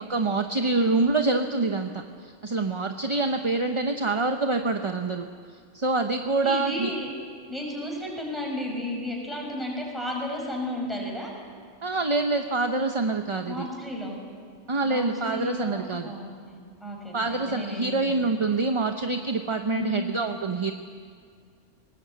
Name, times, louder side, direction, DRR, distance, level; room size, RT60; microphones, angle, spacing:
voice 1, 0.1-5.3 5.7-6.9 11.8-13.7 14.7-16.1 17.1-20.7, right 3 dB, 30° right, 5 dB, 0.7 m, -26 dB
voice 2, 6.4-7.1 7.5-11.3 13.5-14.2 14.8-16.5 16.8-18.2 19.7-20.1, left 1 dB, ahead, -1 dB, 5.5 m, -33 dB
20.5 x 19.0 x 8.3 m, 2.1 s
omnidirectional pair, 1.3 m